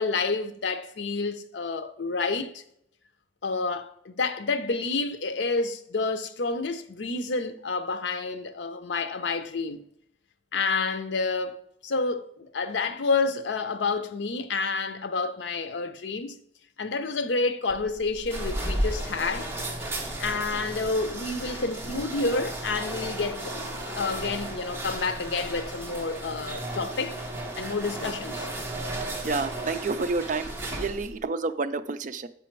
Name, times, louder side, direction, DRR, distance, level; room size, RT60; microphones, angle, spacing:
voice 1, 0.0-2.6 3.4-9.8 10.5-11.6 11.8-16.4 16.8-19.5 20.2-23.6 23.8-27.2 27.6-28.5, left 3 dB, 85° left, 0.6 m, -29 dB
sound 1, 17.7-31.2, right 1 dB, 15° right, 1.1 m, -34 dB
voice 2, 29.2-32.3, right 3 dB, 45° right, 0.4 m, -29 dB
7.7 x 5.1 x 4.5 m
head